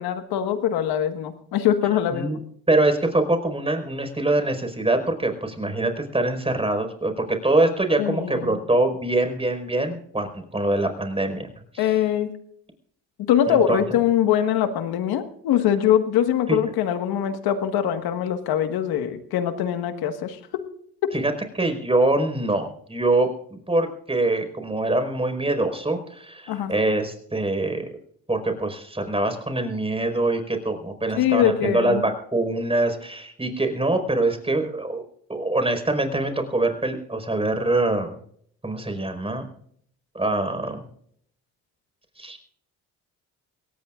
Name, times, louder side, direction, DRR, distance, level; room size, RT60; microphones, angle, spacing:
voice 1, 0.0-2.3 8.0-8.6 11.8-12.3 13.3-20.6 21.0-21.1 26.5-26.7 31.1-32.0, left 10 dB, 70° left, 9 dB, 1.7 m, -23 dB
voice 2, 2.7-11.5 11.7-12.0 13.5-13.8 16.5-16.6 21.1-27.9 28.3-35.0 35.3-38.2 38.6-39.5 40.1-40.8 42.2-42.4, right 2 dB, 15° right, 6 dB, 5.0 m, -24 dB
23.5 x 17.5 x 2.5 m, 0.64 s
supercardioid pair, 65°, 38 cm